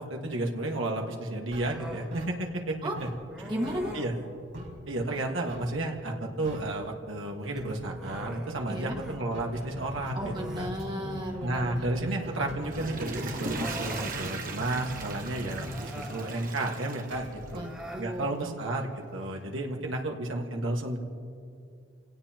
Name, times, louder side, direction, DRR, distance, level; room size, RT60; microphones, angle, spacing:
voice 1, 0.0-3.1 3.4-3.5 3.9-4.1 4.9-10.7 11.4-17.6 18.0-21.0, right 2 dB, 85° right, 1 dB, 1.6 m, -32 dB
sound 1, 1.5-2.7 3.0-4.9 5.5-5.8 6.1-6.2 6.4-6.8 7.6-18.4, equal, 65° right, 4.6 m, -42 dB
Human voice, 1.6-2.1 3.3-4.2 4.9-5.5 7.4-9.2 9.5-9.7 10.1-11.4 12.6-12.7 13.3-14.2 15.5-16.4 17.4-18.1, equal, 5° right, 2.1 m, -43 dB
voice 2, 3.5-4.0 8.7-9.0 10.1-12.5 17.5-18.5, equal, 25° right, 0 dB, 1.7 m, -35 dB
Water / Toilet flush, 12.5-17.8 18.2-18.3, right 3 dB, 45° right, 1.3 m, -38 dB
28.0 x 17.5 x 2.9 m, 2.4 s
head